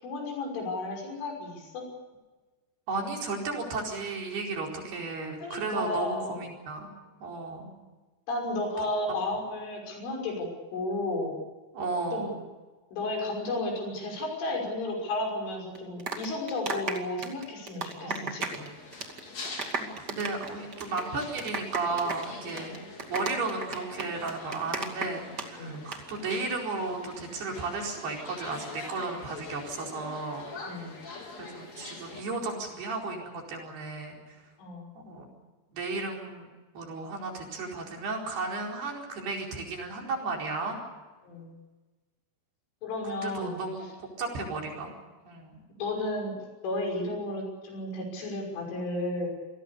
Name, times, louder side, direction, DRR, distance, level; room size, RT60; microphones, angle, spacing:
voice 1, 0.0-1.9 5.4-6.4 8.3-11.4 12.1-12.3 12.9-18.7 25.6-25.8 30.7-30.9 34.6-34.9 41.2-41.5 42.8-43.6 45.8-46.4 46.6-49.3, left 2 dB, 85° left, 1 dB, 8.5 m, -33 dB
voice 2, 2.9-6.9 7.2-7.7 11.7-12.3 18.0-18.3 19.8-22.8 23.1-30.5 31.4-34.4 35.1-35.3 35.7-36.5 36.7-40.8 43.1-43.9 44.2-45.0 45.2-45.5, right 3 dB, 55° right, 0 dB, 6.4 m, -34 dB
sound 1, 15.7-18.7 18.9-19.2 19.5-25.5 25.7-26.0, right 4 dB, 35° right, 1.8 m, -34 dB
sound 2, 18.4-32.2, left 3 dB, 35° left, 4.8 m, -44 dB
28.0 x 19.5 x 6.9 m, 1.2 s
omnidirectional pair, 5.5 m